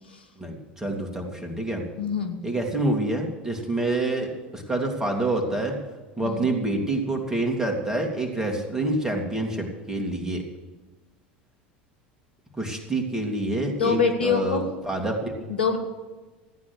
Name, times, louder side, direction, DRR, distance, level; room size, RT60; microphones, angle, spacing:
voice 1, 0.4-1.8 2.4-5.7 6.2-10.4 12.6-15.5, right 2 dB, 10° right, 1 dB, 3.2 m, -27 dB
voice 2, 2.0-2.4 6.2-6.5 13.8-14.7 15.5-15.8, left 5 dB, 85° left, 6 dB, 1.5 m, -24 dB
15.0 x 9.5 x 6.6 m, 1.3 s
hypercardioid pair, 80°, 5 cm